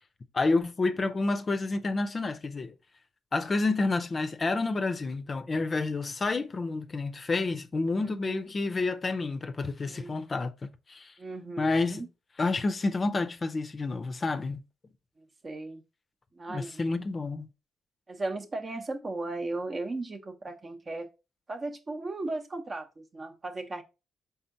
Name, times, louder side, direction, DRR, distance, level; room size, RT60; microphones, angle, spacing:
voice 1, 0.3-2.7 3.3-11.2 11.6-12.0 12.4-14.6 16.5-17.5, left 3 dB, 40° left, 0.5 m, -29 dB
voice 2, 8.0-8.4 9.9-10.2 11.2-12.1 15.4-15.8 16.3-16.9 18.1-21.1 21.5-23.8, right 2 dB, 40° right, 0.7 m, -36 dB
4.3 x 3.5 x 2.6 m
supercardioid pair, 55°, 0 cm